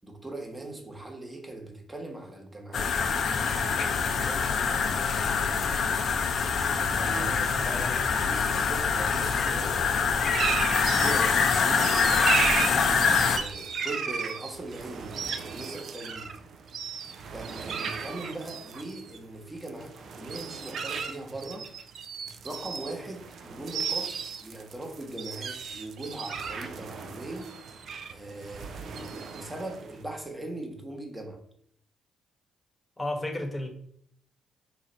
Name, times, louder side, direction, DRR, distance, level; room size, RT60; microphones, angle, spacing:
voice 1, 0.0-5.2 6.7-10.6 11.0-12.4 13.2-15.1 15.5-16.3 17.3-21.7 22.4-27.5 28.1-31.4, right 2 dB, 15° right, 1.1 m, -40 dB
sound 1, 2.7-13.4, left 5 dB, 60° left, 0.5 m, -25 dB
voice 2, 7.2-8.1 33.0-33.7, left 1 dB, 15° left, 1.0 m, -34 dB
sound 2, 10.3-30.0, right 6 dB, 60° right, 0.3 m, -34 dB
3.2 x 2.5 x 3.9 m
hypercardioid pair, 50°, 0 cm